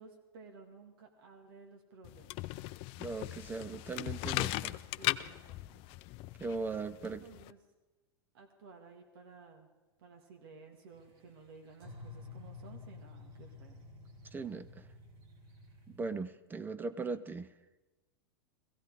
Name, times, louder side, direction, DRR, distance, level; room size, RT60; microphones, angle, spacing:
voice 1, 0.0-2.4 5.0-6.1 6.7-7.6 8.3-9.7 10.0-13.8, right 4 dB, 70° right, 3 dB, 2.1 m, -55 dB
sound 1, 2.0-7.5, left 18 dB, 45° left, 0.5 m, -38 dB
voice 2, 3.0-4.8 6.4-7.3 14.3-14.9 15.9-17.5, right 4 dB, 15° right, 14 dB, 0.5 m, -39 dB
sound 2, 10.9-16.1, left 3 dB, 40° right, 3.2 m, -51 dB
16.5 x 16.0 x 4.9 m, 1.1 s
hypercardioid pair, 120°, 13 cm